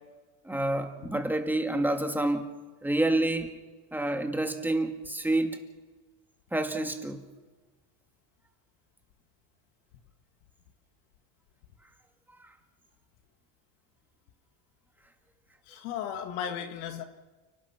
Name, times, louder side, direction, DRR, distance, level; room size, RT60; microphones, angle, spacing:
voice 1, 0.5-2.5 2.8-3.5 3.9-5.6 6.5-7.2, right 1 dB, 5° right, 2.1 m, -28 dB
voice 2, 15.7-17.0, left 9 dB, 85° left, 2.0 m, -35 dB
30.0 x 18.0 x 6.0 m
cardioid pair, 135°, 45 cm